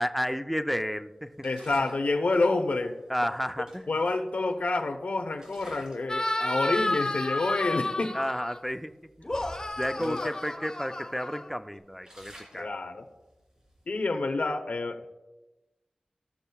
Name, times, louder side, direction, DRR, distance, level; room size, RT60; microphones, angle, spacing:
voice 1, 0.0-1.5 3.1-3.9 8.1-8.9 9.8-12.7, equal, ahead, 9 dB, 0.5 m, -31 dB
voice 2, 1.4-2.9 3.9-8.1 10.0-10.3 12.5-13.0 13.9-15.1, left 3 dB, 75° left, 5 dB, 0.9 m, -28 dB
sound 1, 1.4-2.1 3.2-3.3 3.7-4.9 5.3-6.1 6.5-6.8 7.4-7.5 7.9-8.1 8.6-10.6 10.9-11.0 11.5-14.0, equal, 30° right, 2.6 m, -51 dB
sound 2, 6.1-8.6 9.2-11.8, left 1 dB, 30° left, 1.0 m, -31 dB
17.0 x 6.5 x 2.3 m, 1.1 s
wide cardioid pair, 55°, 3 cm